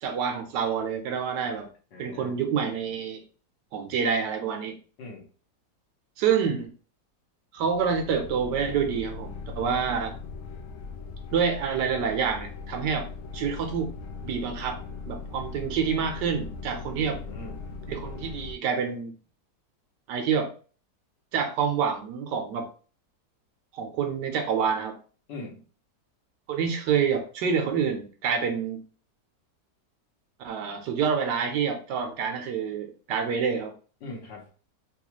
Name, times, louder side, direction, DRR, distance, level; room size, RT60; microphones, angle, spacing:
voice 1, 0.0-1.7 2.0-3.2 3.7-4.8 6.2-6.7 7.5-10.2 11.3-13.1 13.3-13.9 14.2-14.8 15.1-17.2 17.9-19.1 20.1-20.5 21.3-22.7 23.7-25.0 26.5-28.8 30.4-33.7, right 6 dB, 80° right, 5 dB, 1.3 m, -27 dB
voice 2, 1.9-2.4 5.0-5.3 9.7-9.9 17.1-17.7 25.3-25.6 34.0-34.5, left 2 dB, 90° left, -2 dB, 1.8 m, -41 dB
sound 1, 7.6-18.6, left 4 dB, 65° left, 0.8 m, -39 dB
4.0 x 2.3 x 3.0 m, 0.38 s
omnidirectional pair, 1.8 m